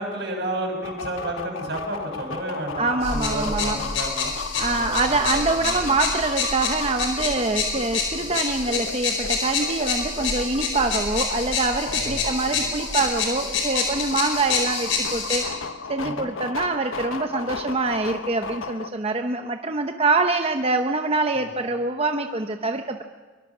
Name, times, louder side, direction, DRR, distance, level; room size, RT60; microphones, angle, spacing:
voice 1, 0.0-5.8 7.5-7.6 11.9-12.7 16.0-16.3 21.4-21.5, right 1 dB, 55° right, 1 dB, 6.6 m, -32 dB
sound 1, 0.8-18.9, left 5 dB, 85° left, 1.0 m, -35 dB
voice 2, 2.8-3.8 4.6-15.5 15.9-23.0, right 3 dB, 30° right, 5 dB, 0.9 m, -25 dB
sound 2, 3.0-15.4, left 4 dB, 70° left, 4.8 m, -27 dB
23.5 x 22.0 x 6.1 m, 1.3 s
head